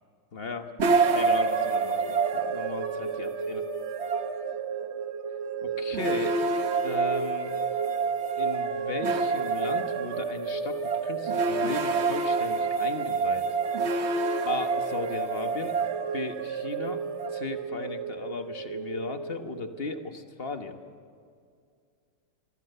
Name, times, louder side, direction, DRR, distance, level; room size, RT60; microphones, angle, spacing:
voice 1, 0.3-0.7 1.1-3.6 5.6-6.4 6.8-7.5 8.4-13.5 14.4-15.8 16.1-17.0 17.3-20.8, left 4 dB, 35° left, 7 dB, 1.1 m, -36 dB
sound 1, 0.8-19.9, right 4 dB, 45° right, 0.9 m, -28 dB
26.5 x 23.5 x 6.7 m, 2.3 s
omnidirectional pair, 2.3 m